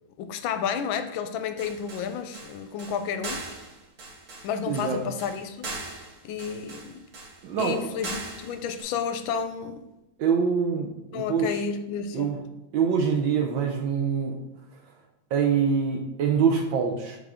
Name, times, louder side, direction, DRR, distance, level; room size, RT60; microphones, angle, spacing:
voice 1, 0.2-3.4 4.4-5.7 6.2-7.0 7.6-9.8 11.1-12.3, left 7 dB, 75° left, 9 dB, 1.3 m, -31 dB
sound 1, 1.6-8.8, right 3 dB, 50° right, 1.4 m, -40 dB
voice 2, 4.7-5.0 7.4-7.9 10.2-11.6 12.1-12.4 12.7-14.4 15.3-17.2, right 6 dB, 70° right, 2 dB, 1.3 m, -25 dB
7.6 x 3.7 x 3.6 m, 0.94 s
omnidirectional pair, 2.3 m